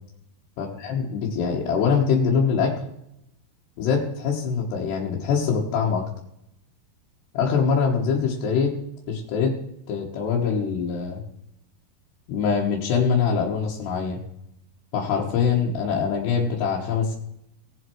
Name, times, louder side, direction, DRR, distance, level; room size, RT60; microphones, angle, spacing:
voice 1, 0.6-2.7 3.8-6.0 7.4-8.7 9.1-9.5 9.9-11.2 12.3-14.2 14.9-17.2, left 6 dB, 85° left, -3 dB, 3.5 m, -23 dB
18.0 x 7.7 x 4.6 m, 0.79 s
omnidirectional pair, 4.7 m